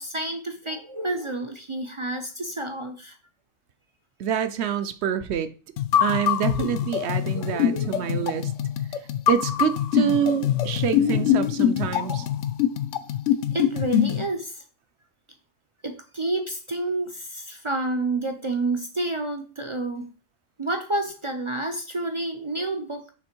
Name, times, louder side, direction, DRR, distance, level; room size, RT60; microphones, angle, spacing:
voice 1, 0.0-3.2 7.3-8.0 11.1-11.4 12.0-12.3 13.5-14.6 15.8-20.1 20.6-23.1, right 2 dB, 45° right, 5 dB, 0.4 m, -29 dB
voice 2, 4.2-5.5 6.0-8.5 9.3-12.2, right 9 dB, 65° right, 11 dB, 0.8 m, -26 dB
sound 1, 5.8-14.3, left 10 dB, 75° left, 0.9 m, -24 dB
6.1 x 3.5 x 4.4 m, 0.35 s
omnidirectional pair, 1.4 m